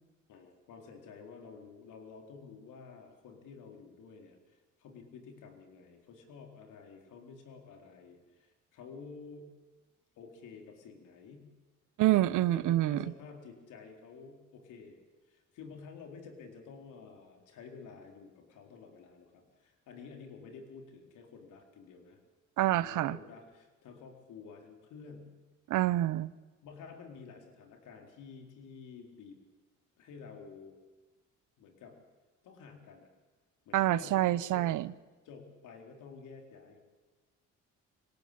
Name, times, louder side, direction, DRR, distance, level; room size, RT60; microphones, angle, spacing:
voice 1, 0.3-9.5 10.2-11.5 12.2-15.0 15.3-22.2 22.7-25.3 26.6-29.4 30.0-30.8 31.6-32.0 32.4-33.1 33.7-34.7 35.2-36.8, left 5 dB, 85° left, 3 dB, 4.2 m, -51 dB
voice 2, 12.0-13.0 22.6-23.2 25.7-26.3 33.7-34.9, right 14 dB, 85° right, 18 dB, 0.9 m, -27 dB
25.5 x 18.0 x 8.7 m, 1.3 s
cardioid pair, 90°, 30 cm